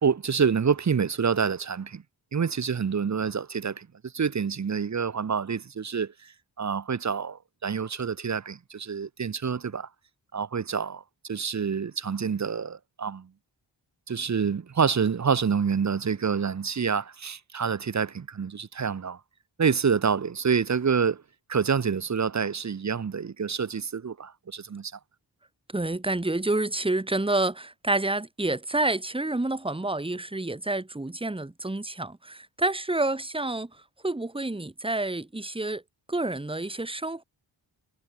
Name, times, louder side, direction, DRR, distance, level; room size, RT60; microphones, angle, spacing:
voice 1, 0.0-2.0 2.3-3.9 4.1-6.1 6.6-9.9 10.3-13.3 14.1-19.2 19.6-21.2 21.5-24.9, right 6 dB, 35° right, 0.6 m, -27 dB
voice 2, 25.7-33.7 34.0-35.8 36.1-37.2, right 2 dB, 10° right, 1.1 m, -28 dB
wide cardioid pair, 65°, 48 cm